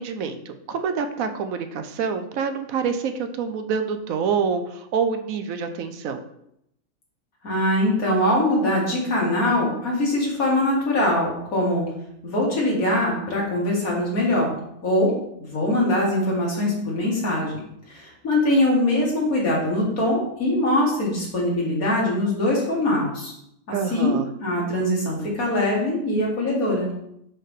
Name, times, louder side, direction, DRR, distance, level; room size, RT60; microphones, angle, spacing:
voice 1, 0.0-6.2 23.7-24.3, right 6 dB, 80° right, 8 dB, 1.1 m, -27 dB
voice 2, 7.4-11.8 12.2-14.5 14.8-15.1 15.4-17.6 17.9-23.3 23.7-24.1 24.4-26.9, left 1 dB, 85° left, -3 dB, 2.3 m, -22 dB
5.5 x 5.5 x 3.6 m, 0.76 s
omnidirectional pair, 1.4 m